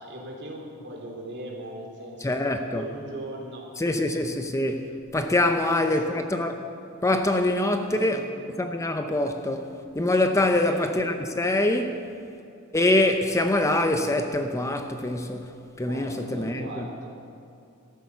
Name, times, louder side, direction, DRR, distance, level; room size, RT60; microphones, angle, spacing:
voice 1, 0.0-3.7 5.6-6.2 7.9-8.3 10.5-10.8 15.8-17.1, right 1 dB, 55° right, 3.2 m, -39 dB
voice 2, 2.2-2.9 3.8-6.5 7.0-8.2 8.6-12.1 12.7-16.9, left 1 dB, 15° left, 0.7 m, -24 dB
14.0 x 12.5 x 6.8 m
head